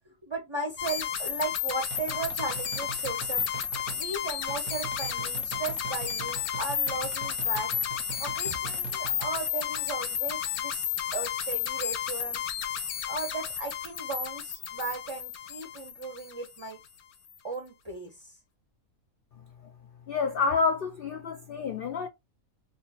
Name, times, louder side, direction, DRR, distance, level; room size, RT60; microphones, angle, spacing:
voice 1, 0.1-3.4 4.0-7.7 8.2-12.4 13.1-16.8 17.4-18.3, right 3 dB, 30° right, 0.6 m, -36 dB
sound 1, 0.8-16.6, left 8 dB, 90° left, 1.2 m, -32 dB
sound 2, 1.9-4.1 4.5-9.5, right 10 dB, 75° right, 1.0 m, -42 dB
voice 2, 20.1-22.1, left 4 dB, 60° left, 0.6 m, -28 dB
3.7 x 2.7 x 2.7 m
omnidirectional pair, 1.5 m